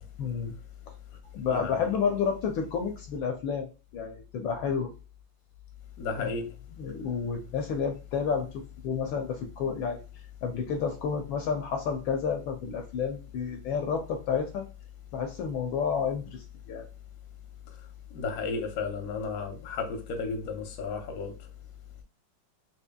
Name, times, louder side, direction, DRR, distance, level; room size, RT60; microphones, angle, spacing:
voice 1, 0.2-0.5 1.3-3.7 3.9-4.9 6.2-10.0 10.4-14.7 15.1-16.9, left 6 dB, 75° left, 1.3 m, -30 dB
voice 2, 6.0-6.5 18.1-21.3, left 4 dB, 55° left, 1.0 m, -33 dB
4.3 x 3.0 x 2.2 m
omnidirectional pair, 2.4 m